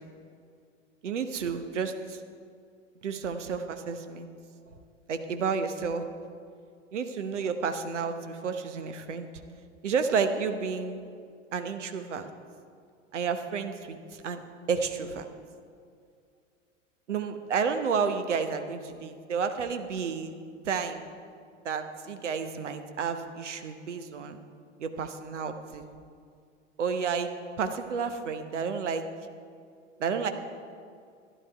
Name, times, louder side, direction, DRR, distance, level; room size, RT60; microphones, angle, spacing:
voice 1, 1.0-2.2 3.0-4.3 5.1-6.0 6.9-9.3 9.8-11.0 11.5-12.3 13.1-14.4 14.7-15.3 17.1-20.3 20.6-21.0 21.6-24.4 24.8-25.9 26.8-29.1 30.0-30.3, right 5 dB, 65° right, 8 dB, 1.0 m, -31 dB
12.0 x 11.0 x 4.6 m, 2.3 s
figure-of-eight pair, 85°, 38 cm